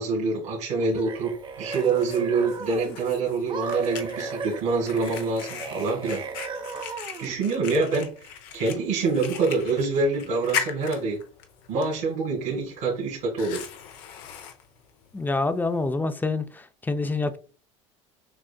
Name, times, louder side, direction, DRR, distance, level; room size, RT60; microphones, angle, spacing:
voice 1, 0.0-6.2 7.2-11.2 11.7-13.6, right 3 dB, 65° right, 1.8 m, -26 dB
sound 1, 0.8-3.0 3.5-7.4, right 4 dB, 30° right, 0.7 m, -35 dB
Fire, 1.0-15.9, left 8 dB, 65° left, 0.8 m, -39 dB
voice 2, 15.1-17.4, left 3 dB, 10° left, 0.5 m, -27 dB
6.3 x 2.4 x 2.2 m
hypercardioid pair, 80°, 16 cm